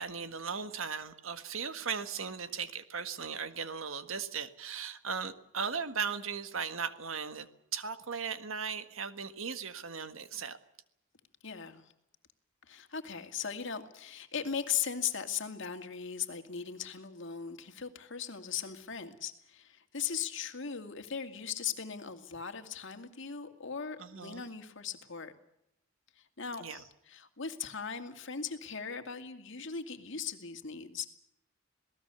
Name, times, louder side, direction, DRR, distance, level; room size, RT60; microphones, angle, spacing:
voice 1, 0.0-10.6 24.0-24.4 26.6-26.8, right 6 dB, 80° right, 10 dB, 1.6 m, -37 dB
voice 2, 11.4-11.8 12.7-25.3 26.4-31.1, left 7 dB, 65° left, 6 dB, 2.3 m, -38 dB
27.0 x 18.5 x 7.0 m, 0.80 s
head